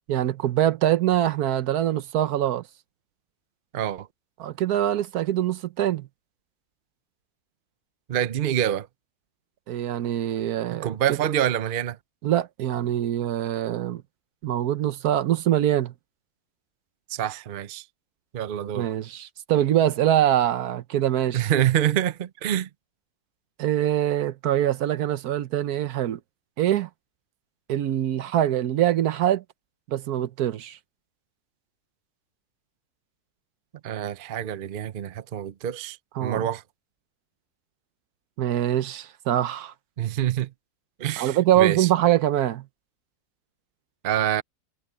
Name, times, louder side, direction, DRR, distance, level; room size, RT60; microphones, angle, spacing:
voice 1, 0.1-2.6 4.4-6.1 9.7-11.2 12.2-14.0 14.4-15.9 18.8-21.5 23.6-26.2 26.6-26.9 27.7-29.4 29.9-30.8 36.1-36.5 38.4-39.7 41.2-42.6, right 12 dB, 70° right, 1.2 m, -24 dB
voice 2, 3.7-4.1 8.1-8.9 10.7-12.0 17.1-17.8 18.3-18.9 21.3-22.7 33.8-36.6 40.0-40.5 41.0-41.9 44.0-44.4, right 11 dB, 55° right, 0.6 m, -26 dB
omnidirectional pair, 1.7 m